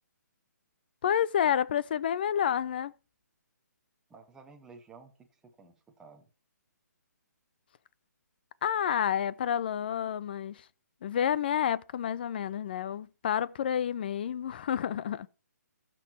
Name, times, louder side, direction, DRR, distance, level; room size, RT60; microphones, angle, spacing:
voice 1, 1.0-2.9 8.6-10.6 11.0-15.3, left 9 dB, 35° left, 0.5 m, -29 dB
voice 2, 4.1-6.3, right 4 dB, 5° right, 1.0 m, -53 dB
15.0 x 6.2 x 4.4 m
hypercardioid pair, 165°, 10 cm